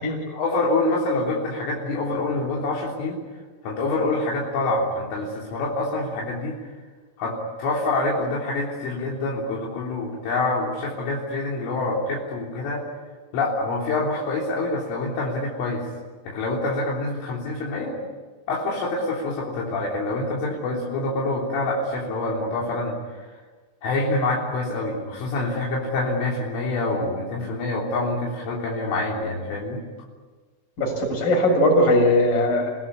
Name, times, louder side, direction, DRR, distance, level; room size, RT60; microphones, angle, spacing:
voice 1, 0.3-3.2 3.6-6.6 7.2-12.8 13.3-15.9 16.3-18.0 18.5-23.0 23.8-29.8, left 2 dB, 75° left, -3 dB, 6.0 m, -26 dB
voice 2, 30.8-32.9, left 1 dB, 40° left, 0 dB, 8.6 m, -20 dB
30.0 x 18.0 x 9.8 m, 1.4 s
omnidirectional pair, 5.7 m